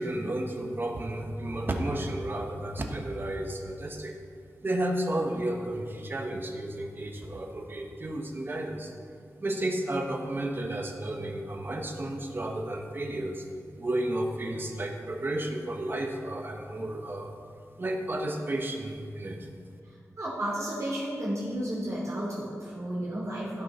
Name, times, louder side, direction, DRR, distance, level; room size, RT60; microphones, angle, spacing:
voice 1, 0.0-4.1 4.6-8.9 9.4-13.4 13.8-17.3 17.8-19.5, right 1 dB, 35° right, 3 dB, 1.3 m, -32 dB
voice 2, 19.8-23.6, right 1 dB, 60° right, -8 dB, 3.1 m, -33 dB
16.0 x 6.4 x 4.4 m, 2.3 s
wide cardioid pair, 85°, 6 cm